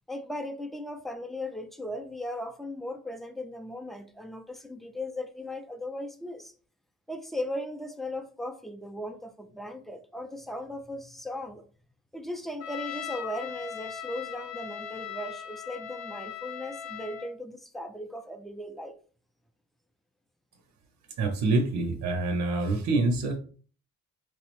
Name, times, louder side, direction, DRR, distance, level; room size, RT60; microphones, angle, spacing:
voice 1, 0.1-6.5 7.1-11.6 12.1-19.0, left 1 dB, ahead, 0.4 m, -37 dB
Trumpet, 12.6-17.3, left 8 dB, 60° left, 0.4 m, -39 dB
voice 2, 21.2-23.4, right 2 dB, 70° right, 0.6 m, -26 dB
4.6 x 2.0 x 3.0 m
cardioid pair, 90°, 30 cm